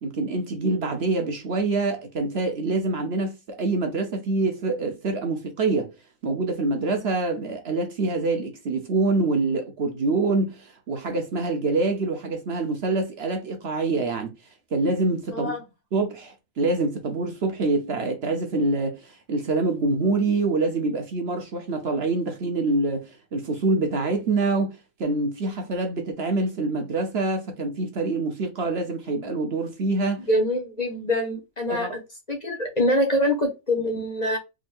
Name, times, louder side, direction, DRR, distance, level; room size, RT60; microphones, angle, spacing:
voice 1, 0.0-5.9 6.2-14.3 14.7-15.5 15.9-30.2 31.7-31.9, right 3 dB, 55° right, 1.0 m, -25 dB
voice 2, 15.3-15.6 30.3-31.9 32.3-34.4, left 1 dB, 35° left, 0.9 m, -24 dB
3.6 x 3.6 x 2.5 m
omnidirectional pair, 1.4 m